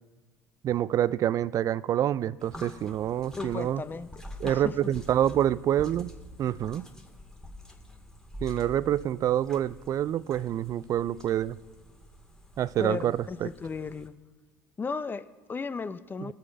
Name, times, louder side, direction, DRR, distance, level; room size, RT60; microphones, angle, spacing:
voice 1, 0.6-3.8 4.4-6.1 6.4-6.9 8.4-11.6 12.6-13.5 16.2-16.3, right 11 dB, 45° right, 0.4 m, -27 dB
sound 1, 2.4-14.1, left 1 dB, 5° left, 2.0 m, -47 dB
voice 2, 3.4-4.1 4.4-4.9 12.8-14.2 14.8-16.3, left 5 dB, 25° left, 0.6 m, -35 dB
19.0 x 6.5 x 5.2 m
hypercardioid pair, 70°, 8 cm